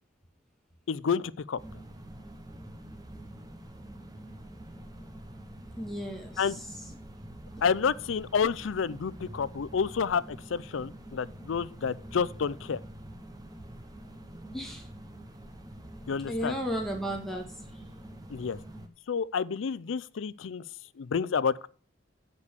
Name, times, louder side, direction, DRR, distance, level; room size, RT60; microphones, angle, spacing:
voice 1, 0.9-1.6 6.4-6.6 7.6-10.2 10.5-12.8 16.1-16.5 18.3-18.6 19.1-20.6 21.0-21.7, left 6 dB, 90° left, 0.4 m, -29 dB
sound 1, 1.6-18.9, right 1 dB, 20° right, 0.9 m, -46 dB
voice 2, 5.8-7.0 14.5-14.9 16.3-17.8, equal, ahead, 1.7 m, -35 dB
8.2 x 5.3 x 6.6 m
head